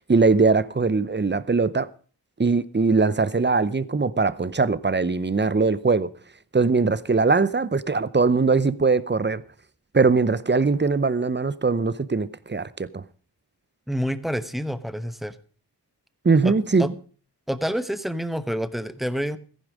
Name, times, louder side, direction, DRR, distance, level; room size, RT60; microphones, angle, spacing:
voice 1, 0.0-1.9 2.4-6.1 6.5-9.4 9.9-13.0 16.2-16.9, right 4 dB, 25° right, 0.7 m, -21 dB
voice 2, 13.9-15.3 16.4-16.5 16.8-16.9 17.5-19.4, equal, ahead, 1.1 m, -28 dB
14.5 x 11.0 x 5.0 m
wide cardioid pair, 40°, 40 cm